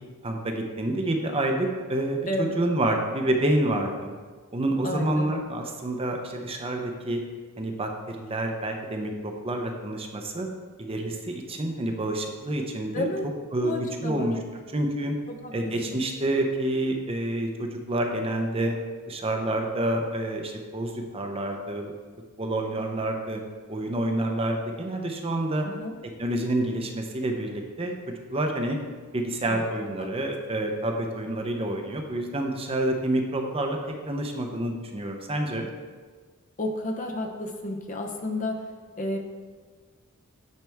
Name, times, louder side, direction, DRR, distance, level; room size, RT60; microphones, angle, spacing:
voice 1, 0.2-4.1 4.5-7.2 7.6-10.5 10.8-13.1 13.5-13.7 14.0-14.4 14.7-15.2 15.5-18.7 19.1-21.9 22.4-23.4 23.7-25.7 26.0-28.8 29.1-33.8 34.1-35.7, right 1 dB, 25° right, 3 dB, 0.7 m, -28 dB
voice 2, 4.8-5.4 12.9-13.3 13.6-14.3 15.3-15.7 25.7-26.0 29.5-29.6 30.0-30.1 36.6-38.6 39.0-39.2, left 1 dB, 35° left, 3 dB, 0.7 m, -31 dB
9.2 x 5.9 x 3.5 m, 1.5 s
head